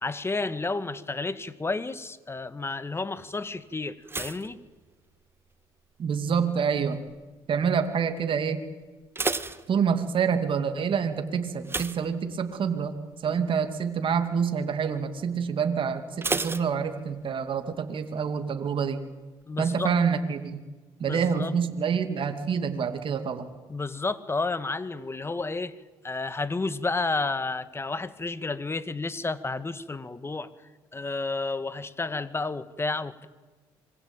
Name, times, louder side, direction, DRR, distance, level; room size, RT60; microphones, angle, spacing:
voice 1, 0.0-4.6 13.3-13.4 19.5-19.9 21.0-21.5 23.7-25.8 26.0-30.5 30.9-33.3, left 3 dB, 25° left, 14 dB, 1.9 m, -31 dB
sound 1, 4.0-5.5 5.8-6.3 6.9-7.3 7.6-7.7 8.1-8.2 8.8-10.3 11.6-12.8 13.1-13.4 13.8-13.9 16.2-17.4 17.7-17.8, right 3 dB, 20° right, 1.7 m, -33 dB
voice 2, 6.0-7.0 7.5-8.6 9.7-13.0 13.2-19.0 19.6-20.6 21.0-23.5, right 6 dB, 50° right, 7 dB, 2.7 m, -27 dB
26.0 x 22.5 x 9.1 m, 1.3 s
supercardioid pair, 75°, 11 cm